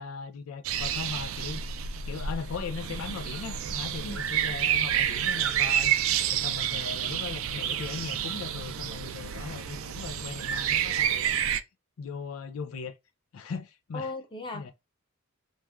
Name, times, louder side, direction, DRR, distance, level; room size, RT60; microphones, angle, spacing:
voice 1, 0.0-1.6 2.0-11.4 12.0-12.9 13.3-14.1 14.5-14.7, left 5 dB, 75° left, 0.4 m, -38 dB
sound 1, 0.6-11.6, right 9 dB, 65° right, 0.4 m, -29 dB
voice 2, 13.9-14.7, left 2 dB, 25° left, 0.7 m, -37 dB
3.2 x 2.2 x 2.3 m
head